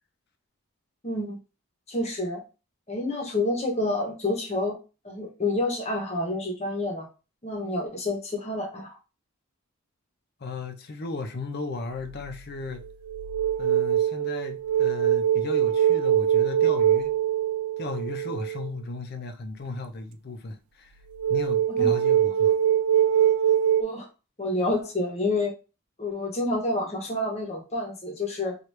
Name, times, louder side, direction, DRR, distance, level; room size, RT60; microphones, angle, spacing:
voice 1, 1.0-1.4 1.9-2.4 2.9-4.8 5.0-7.1 7.4-8.9 21.8-21.9 23.8-24.1 24.4-25.5 26.0-28.6, left 2 dB, 30° left, 0.8 m, -28 dB
voice 2, 10.4-12.8 13.6-17.1 17.8-20.9 21.3-22.6, left 3 dB, 45° left, 0.5 m, -35 dB
sound 1, 12.0-12.3 12.8-18.7 21.2-23.8, right 10 dB, 80° right, 0.3 m, -23 dB
2.9 x 2.4 x 3.1 m
head